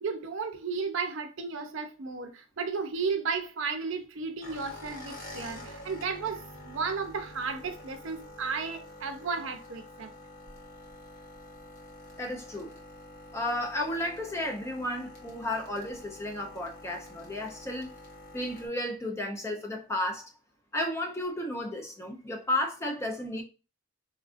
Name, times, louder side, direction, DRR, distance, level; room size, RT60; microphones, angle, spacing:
voice 1, 0.0-10.1, right 5 dB, 65° right, 0.5 m, -34 dB
sound 1, 4.4-18.7, left 1 dB, 40° left, 0.8 m, -47 dB
voice 2, 12.2-12.7 13.3-17.9 18.3-20.3 20.7-23.4, left 1 dB, 15° left, 0.4 m, -33 dB
4.3 x 2.4 x 2.4 m
head